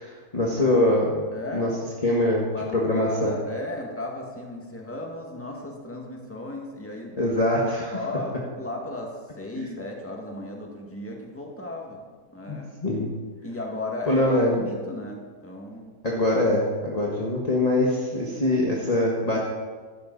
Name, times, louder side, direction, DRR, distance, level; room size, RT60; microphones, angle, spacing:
voice 1, 0.0-1.2 1.5-1.7 2.0-2.5 2.7-3.3 7.2-8.0 9.5-9.7 12.5-13.1 14.1-14.6 16.0-19.4, left 1 dB, 25° left, -3 dB, 1.6 m, -23 dB
voice 2, 1.3-1.7 2.5-7.2 7.9-12.0 12.3-12.7 13.4-15.9, left 1 dB, 10° left, -1 dB, 2.0 m, -35 dB
14.5 x 12.5 x 4.1 m, 1.5 s
omnidirectional pair, 1.6 m